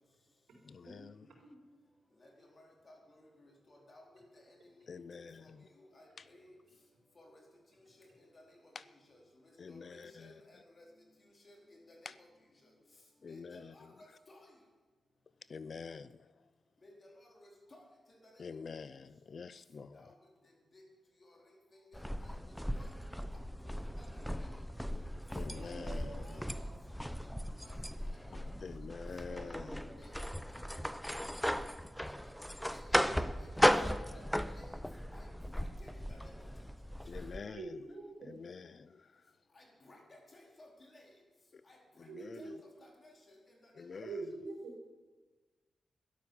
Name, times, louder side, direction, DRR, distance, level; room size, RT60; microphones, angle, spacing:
voice 1, 0.6-1.3 4.9-5.7 8.7-8.8 9.6-10.4 12.0-12.1 13.2-13.7 15.5-16.5 18.4-20.1 25.3-26.4 28.3-30.0 37.0-37.9 38.2-39.4 41.5-41.6 42.0-42.4 43.7-44.3, left 5 dB, 55° left, 16 dB, 0.5 m, -47 dB
voice 2, 2.2-4.9 5.2-6.6 7.2-7.4 7.7-10.9 11.2-12.3 12.6-12.7 13.3-14.5 16.8-18.6 19.9-20.9 21.2-23.0 23.3-23.4 23.7-24.5 25.6-26.7 27.2-27.7 28.0-28.4 30.0-30.3 30.7-30.8 31.1-31.6 32.0-32.1 32.5-33.0 33.4-34.8 35.1-36.5 39.5-41.2 41.6-42.1 42.4-44.0, left 1 dB, 40° left, 1 dB, 4.2 m, -60 dB
sound 1, 21.9-37.4, equal, 5° left, 0.7 m, -36 dB
voice 3, 25.5-26.1 29.3-30.0 37.5-38.3 42.1-42.5 44.0-44.7, right 3 dB, 85° right, 0 dB, 4.2 m, -46 dB
12.5 x 11.5 x 7.2 m, 1.3 s
cardioid pair, 65°, 0 cm